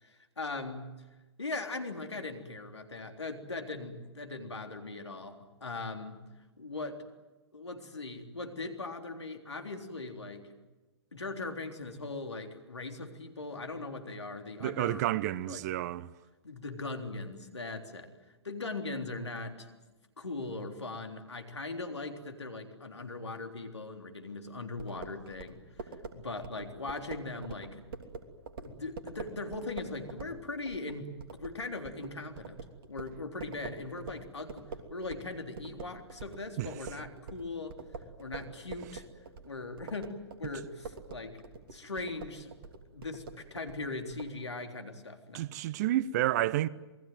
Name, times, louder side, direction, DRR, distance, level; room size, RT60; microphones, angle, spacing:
voice 1, 0.0-0.9 1.4-6.2 6.6-7.0 7.5-10.5 11.1-15.0 15.5-15.6 16.4-18.1 18.4-19.7 20.2-27.8 28.6-31.1 31.4-32.6 32.9-37.8 38.2-39.1 39.4-41.4 41.7-42.5 42.9-45.5, left 3 dB, 75° left, 3.6 m, -40 dB
voice 2, 14.6-16.1 36.6-36.7 45.3-46.7, right 14 dB, 40° right, 0.8 m, -30 dB
sound 1, 24.8-35.3 35.6-44.3, right 4 dB, 55° right, 3.2 m, -45 dB
27.5 x 20.5 x 9.3 m
figure-of-eight pair, 115°, 14 cm